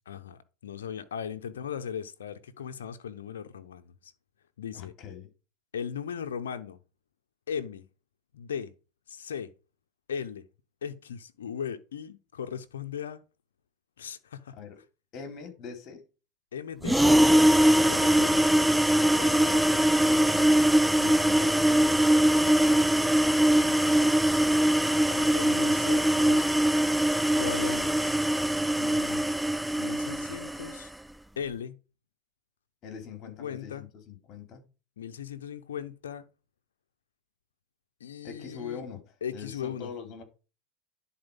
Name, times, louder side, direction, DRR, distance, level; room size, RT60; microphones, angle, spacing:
voice 1, 0.1-4.1 4.6-4.9 5.7-6.8 7.5-7.9 8.3-8.7 9.1-9.5 10.1-10.4 10.8-13.2 14.0-14.6 16.5-17.2 17.9-18.4 21.0-21.3 25.1-26.4 27.3-28.2 29.7-30.9 31.4-31.8 33.2-33.9 35.0-36.3 38.0-38.9 39.2-39.9, left 7 dB, 90° left, 0.9 m, -38 dB
voice 2, 4.7-5.3 14.5-14.8 15.1-16.0 18.1-18.5 19.1-20.6 21.2-23.0 23.5-24.2 28.8-29.4 32.8-34.6 38.2-39.0 39.3-40.2, left 6 dB, 45° left, 3.7 m, -43 dB
sound 1, 16.8-30.8, right 1 dB, 5° right, 0.4 m, -22 dB
10.5 x 4.4 x 5.4 m
hypercardioid pair, 100°, 0 cm